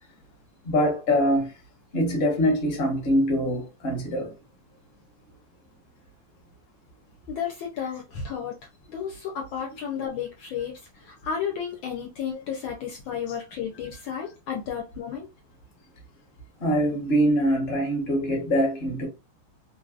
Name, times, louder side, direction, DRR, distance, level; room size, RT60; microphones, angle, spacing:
voice 1, 0.6-1.5 1.9-4.3 16.6-19.1, equal, 40° left, 1.1 m, -23 dB
voice 2, 7.3-8.6 8.9-15.3, left 7 dB, 70° left, 1.3 m, -32 dB
3.3 x 2.6 x 2.4 m
omnidirectional pair, 2.4 m